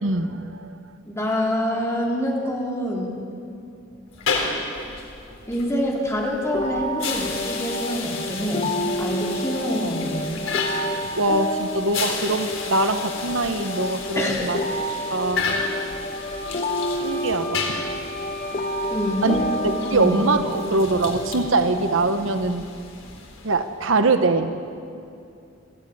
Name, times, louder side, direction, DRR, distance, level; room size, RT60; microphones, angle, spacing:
voice 1, 0.0-0.7 11.1-14.6 15.1-15.6 17.0-17.6 19.2-19.4 19.9-22.7 23.4-24.5, right 3 dB, 85° right, 9 dB, 1.1 m, -23 dB
voice 2, 1.0-3.1 5.5-8.6 9.0-10.3 14.1-14.5 18.9-19.4 19.9-20.1, left 1 dB, 15° left, -2 dB, 3.4 m, -26 dB
sound 1, 4.1-23.7, left 4 dB, 85° left, 3.7 m, -33 dB
sound 2, 6.5-22.5, equal, 35° left, 0.8 m, -30 dB
Wind instrument woodwind instrument, 16.1-20.4, left 4 dB, 65° left, 2.7 m, -39 dB
21.0 x 14.5 x 9.5 m, 2.6 s
head